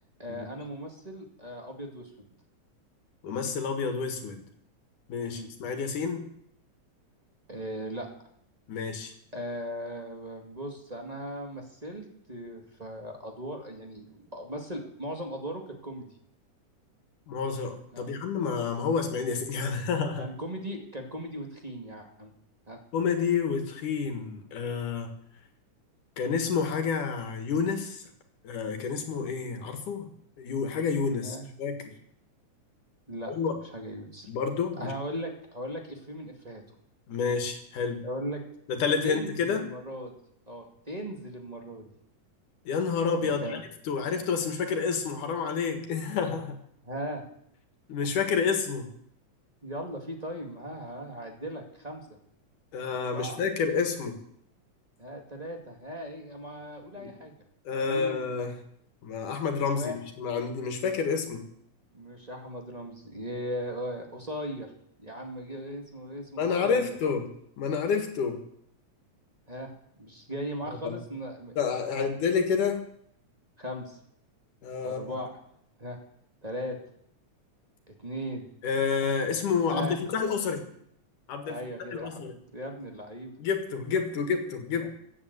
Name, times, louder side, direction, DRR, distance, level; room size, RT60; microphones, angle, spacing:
voice 1, 0.2-2.3 5.3-5.5 7.5-8.1 9.3-16.1 17.9-18.1 20.2-22.3 22.7-22.8 31.2-31.5 33.1-33.3 33.7-34.3 34.8-36.6 38.0-38.4 39.0-40.1 40.5-41.9 43.2-43.6 46.8-47.2 49.6-52.0 53.0-53.4 55.0-57.3 57.8-58.2 59.7-60.0 61.9-64.7 65.0-67.0 69.5-69.7 70.0-71.5 71.9-72.1 73.6-74.0 74.8-75.3 75.8-76.0 76.4-76.8 77.9-78.5 79.7-80.0 81.4-82.2 82.5-83.3 84.8-84.9, equal, 15° right, 2 dB, 1.6 m, -38 dB
voice 2, 3.2-4.4 5.1-6.3 8.7-9.1 17.3-20.3 22.9-25.1 26.2-28.1 28.4-30.1 30.4-31.9 33.3-33.5 34.3-34.9 37.1-38.0 38.7-39.6 42.7-46.6 47.9-48.9 52.7-54.2 57.0-57.1 57.7-58.6 59.0-61.5 66.4-67.3 67.6-68.4 70.7-71.0 71.6-72.9 74.6-75.2 78.6-80.6 81.3-81.6 81.9-82.4 83.4-84.9, left 5 dB, 85° left, 6 dB, 3.4 m, -29 dB
15.0 x 8.5 x 8.1 m, 0.70 s
omnidirectional pair, 3.5 m